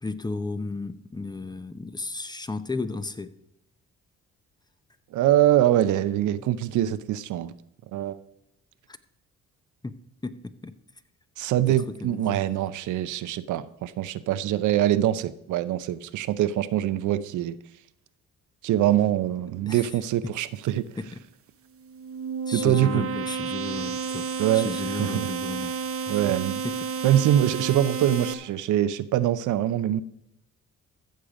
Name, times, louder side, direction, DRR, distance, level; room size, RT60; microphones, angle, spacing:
voice 1, 0.0-3.3 6.4-6.6 8.9-9.0 9.8-10.0 10.2-10.8 11.7-12.4 19.7-19.9 21.0-21.2 22.5-24.3 24.5-25.8 26.0-26.2 26.6-26.9, left 3 dB, 15° left, 12 dB, 0.7 m, -34 dB
voice 2, 5.1-7.5 7.9-8.2 11.4-17.6 18.6-20.9 22.5-23.1 24.4-24.7 25.0-25.3 26.1-26.6 27.0-30.0, right 12 dB, 75° right, 14 dB, 0.6 m, -24 dB
sound 1, 21.8-28.3, right 5 dB, 45° right, 1.0 m, -31 dB
14.5 x 6.7 x 5.0 m, 0.81 s
cardioid pair, 90°, 30 cm